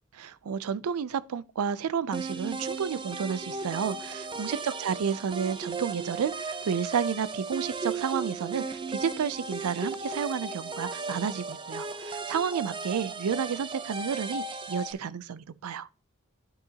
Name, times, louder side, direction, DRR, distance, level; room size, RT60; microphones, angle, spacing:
voice 1, 0.2-15.9, right 7 dB, 80° right, 0.4 m, -31 dB
sound 1, 2.1-14.9, right 4 dB, 20° right, 0.5 m, -36 dB
10.5 x 5.7 x 2.8 m
head